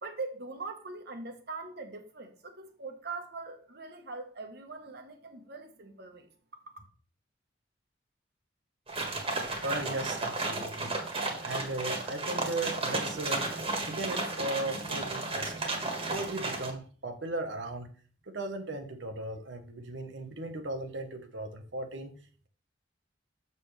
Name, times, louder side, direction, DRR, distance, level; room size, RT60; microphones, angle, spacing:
voice 1, 0.0-6.3 6.8-6.9, right 3 dB, 60° right, 1.3 m, -42 dB
sound 1, 8.9-16.7, right 2 dB, 30° right, 1.6 m, -33 dB
voice 2, 9.6-11.0 11.4-13.5 13.8-15.5 16.1-17.9 18.3-22.1, right 2 dB, 90° right, 1.3 m, -37 dB
6.9 x 6.8 x 3.3 m
head